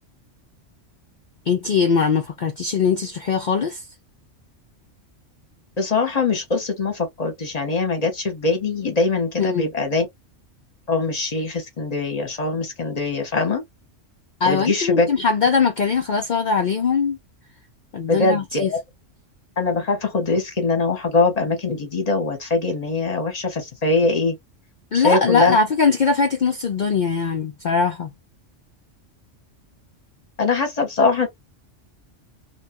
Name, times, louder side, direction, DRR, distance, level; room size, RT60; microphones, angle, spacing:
voice 1, 1.5-3.8 9.4-9.7 14.4-17.2 17.9-18.7 24.9-28.1, left 5 dB, 65° left, 0.4 m, -21 dB
voice 2, 5.8-10.1 10.9-13.6 14.4-15.1 18.1-18.8 19.6-24.3 25.0-25.6 30.4-31.3, left 3 dB, 40° left, 0.8 m, -22 dB
2.8 x 2.3 x 2.8 m
omnidirectional pair, 1.3 m